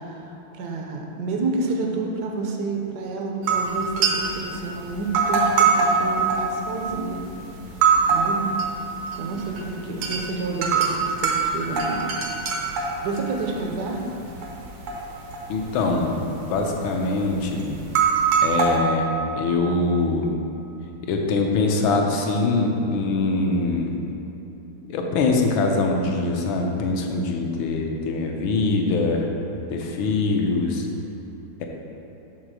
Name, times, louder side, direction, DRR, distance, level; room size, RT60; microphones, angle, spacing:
voice 1, 0.0-7.2 8.1-8.5 9.2-12.0 13.0-14.0, right 3 dB, 65° right, 1 dB, 1.1 m, -29 dB
sound 1, 3.5-4.5 5.0-7.2 7.6-8.7 9.0-9.6 9.9-10.2 10.6-13.9 14.2-15.0 15.3-16.1 16.4-16.7 17.3-17.4 17.8-18.8, right 5 dB, 80° right, 1.8 m, -22 dB
voice 2, 15.5-17.7 18.4-19.1 19.4-20.3 21.1-24.0 24.9-29.3 29.7-30.9 31.6-31.7, left 3 dB, 70° left, 1 dB, 1.5 m, -23 dB
6.4 x 4.1 x 6.1 m, 3.0 s
omnidirectional pair, 2.4 m